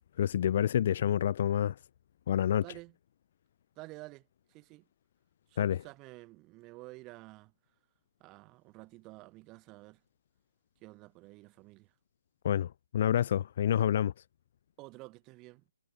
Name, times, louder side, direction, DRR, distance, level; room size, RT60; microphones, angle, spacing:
voice 1, 0.2-1.8 2.3-2.6 5.6-5.8 12.4-14.1, left 10 dB, 40° left, 0.5 m, -28 dB
voice 2, 2.6-2.9 3.8-4.8 5.5-7.5 8.2-10.0 10.8-11.9 14.8-15.6, right 22 dB, 20° right, 7.5 m, -50 dB
figure-of-eight pair, 135°, 0 cm